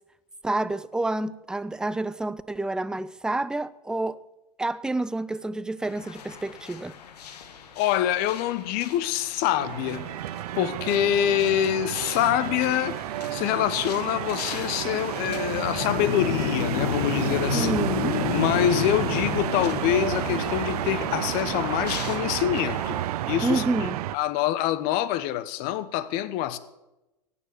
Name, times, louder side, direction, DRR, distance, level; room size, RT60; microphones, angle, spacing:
voice 1, 0.4-4.2 4.6-6.9 17.5-18.2 23.4-24.0, right 2 dB, 5° right, 0.4 m, -28 dB
sound 1, 5.8-23.1, left 7 dB, 75° left, 1.6 m, -33 dB
voice 2, 7.8-10.1 10.5-13.0 13.3-17.8 18.3-23.0 23.3-23.9 24.1-26.6, left 12 dB, 45° left, 1.0 m, -25 dB
sound 2, 9.6-24.2, right 14 dB, 70° right, 0.4 m, -31 dB
17.0 x 7.1 x 7.0 m
hypercardioid pair, 100°, 21 cm